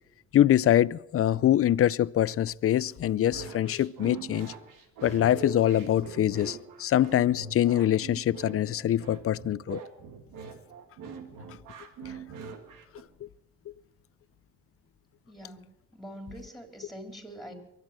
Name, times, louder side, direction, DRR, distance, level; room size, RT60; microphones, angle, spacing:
voice 1, 0.3-4.5 5.0-9.8, left 11 dB, 45° left, 0.5 m, -24 dB
sound 1, 3.3-13.0, right 5 dB, 85° right, 1.8 m, -43 dB
voice 2, 15.3-17.5, equal, ahead, 3.7 m, -44 dB
23.0 x 8.2 x 7.5 m
cardioid pair, 75°, 31 cm